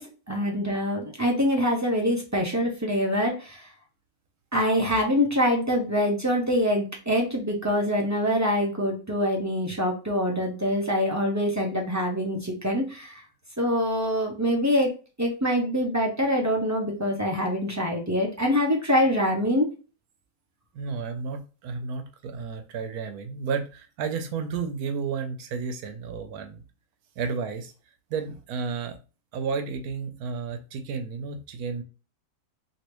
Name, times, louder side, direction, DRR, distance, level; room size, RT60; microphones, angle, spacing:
voice 1, 0.0-3.7 4.5-13.2 13.6-19.7, equal, 20° right, -1 dB, 0.4 m, -25 dB
voice 2, 20.7-26.6 27.2-27.7 28.1-28.9 29.3-31.8, right 5 dB, 80° right, 7 dB, 1.2 m, -32 dB
3.2 x 2.8 x 3.0 m, 0.34 s
omnidirectional pair, 1.6 m